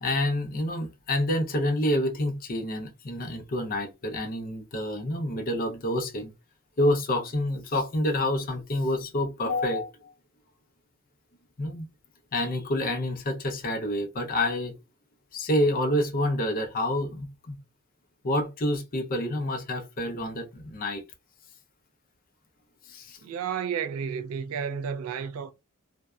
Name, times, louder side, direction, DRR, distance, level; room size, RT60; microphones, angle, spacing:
voice 1, 0.0-6.3 6.8-10.1 11.6-11.9 12.3-14.7 15.3-17.6 18.2-21.0 22.9-23.2, left 1 dB, 45° left, 0.6 m, -28 dB
voice 2, 23.2-25.5, right 7 dB, 90° right, 0.4 m, -32 dB
2.6 x 2.1 x 2.3 m
head